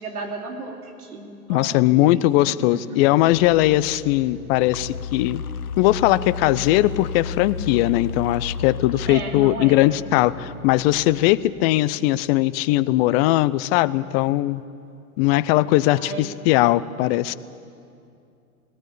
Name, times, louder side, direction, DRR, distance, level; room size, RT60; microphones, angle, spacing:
voice 1, 0.0-2.8 9.1-9.8 15.9-16.2, right 3 dB, 85° right, 2 dB, 3.2 m, -34 dB
voice 2, 1.5-5.4 5.8-14.6 15.2-17.3, left 16 dB, 45° left, 16 dB, 0.7 m, -19 dB
sound 1, 3.2-11.8, left 6 dB, 90° left, 0.8 m, -34 dB
18.5 x 18.5 x 8.6 m, 2.5 s
hypercardioid pair, 110°, 44 cm